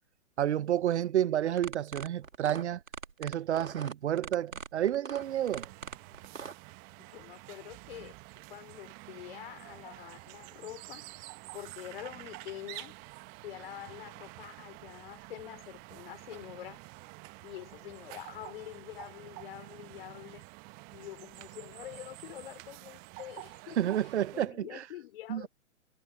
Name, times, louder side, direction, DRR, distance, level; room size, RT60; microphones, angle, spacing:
voice 1, 0.4-2.8 3.2-5.7 23.8-24.8 25.3-25.5, right 11 dB, 55° right, 0.8 m, -30 dB
sound 1, 1.5-6.5, right 5 dB, 75° right, 2.8 m, -41 dB
sound 2, 5.2-24.5, right 28 dB, 20° right, 1.0 m, -49 dB
voice 2, 7.0-8.2 8.5-11.1 11.5-12.9 13.4-16.8 17.4-20.4 20.9-23.8 24.3-25.5, left 13 dB, 45° left, 3.4 m, -46 dB
figure-of-eight pair, 125°, 41 cm